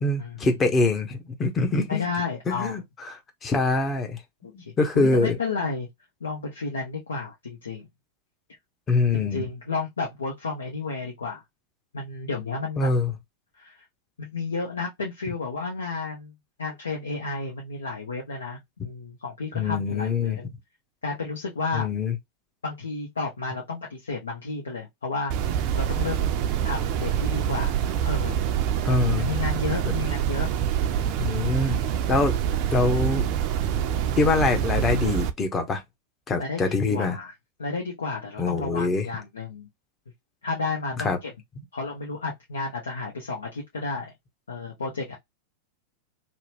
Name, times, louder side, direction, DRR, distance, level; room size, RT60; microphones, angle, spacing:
voice 1, 0.0-2.0 2.5-3.2 3.4-4.2 4.5-5.4 8.9-9.4 12.8-13.1 19.5-20.4 21.7-22.2 28.8-29.3 31.2-31.8 32.1-32.3 32.7-33.2 34.2-35.8 36.3-37.2 38.4-39.1 41.0-41.2, left 3 dB, 20° left, 0.8 m, -24 dB
voice 2, 1.9-2.8 4.4-5.9 6.2-7.9 9.1-11.4 11.9-12.9 13.6-13.8 14.2-16.3 16.6-20.5 21.0-21.9 22.6-25.3 25.7-26.3 26.6-28.4 29.1-30.5 31.0-31.3 36.4-37.3 37.6-39.7 40.4-41.3 41.7-44.1 44.5-45.1, left 4 dB, 70° left, 0.8 m, -32 dB
sound 1, 25.3-35.3, right 9 dB, 45° right, 0.4 m, -26 dB
2.9 x 2.2 x 2.8 m
figure-of-eight pair, 90°, 0 cm